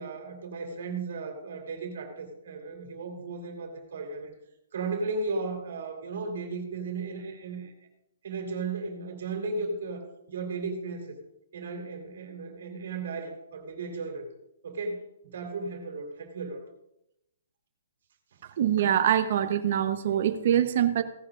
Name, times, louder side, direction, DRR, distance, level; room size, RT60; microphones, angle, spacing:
voice 1, 0.0-4.3 4.7-7.7 8.2-11.2 11.5-14.2 14.6-16.6, right 3 dB, 60° right, 3 dB, 2.7 m, -35 dB
voice 2, 18.6-21.0, right 10 dB, 45° right, 10 dB, 1.0 m, -24 dB
17.0 x 10.5 x 2.5 m, 0.85 s
hypercardioid pair, 165°, 0 cm